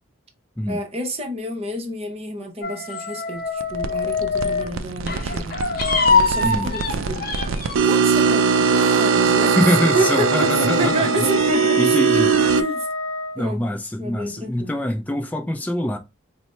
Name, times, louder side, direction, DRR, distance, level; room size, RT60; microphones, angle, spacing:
voice 1, 0.7-5.6 6.0-7.3 7.8-9.6 9.9-12.9 13.4-14.7, right 1 dB, 30° right, 0.7 m, -29 dB
sound 1, 2.6-4.8 5.1-7.9, left 4 dB, 45° left, 0.7 m, -23 dB
sound 2, 3.6-12.6, right 6 dB, 80° right, 0.4 m, -21 dB
Wind instrument woodwind instrument, 8.1-13.4, left 2 dB, 90° left, 0.4 m, -27 dB
voice 2, 9.6-11.3 11.8-12.3 13.4-16.0, left 1 dB, 10° left, 0.4 m, -24 dB
4.2 x 2.1 x 3.2 m
head